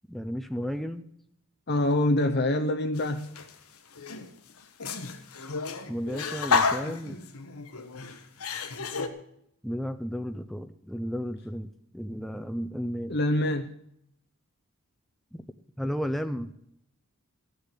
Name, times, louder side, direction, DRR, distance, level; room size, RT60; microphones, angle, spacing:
voice 1, 0.1-1.0 5.9-7.2 9.6-13.2 15.3-15.4 15.8-16.5, equal, ahead, 8 dB, 0.5 m, -33 dB
voice 2, 1.7-3.4 13.1-13.7, left 1 dB, 45° left, 6 dB, 0.7 m, -25 dB
sound 1, 3.0-3.5 3.9-9.1, left 4 dB, 85° left, 1.3 m, -31 dB
15.5 x 6.8 x 8.2 m, 0.74 s
head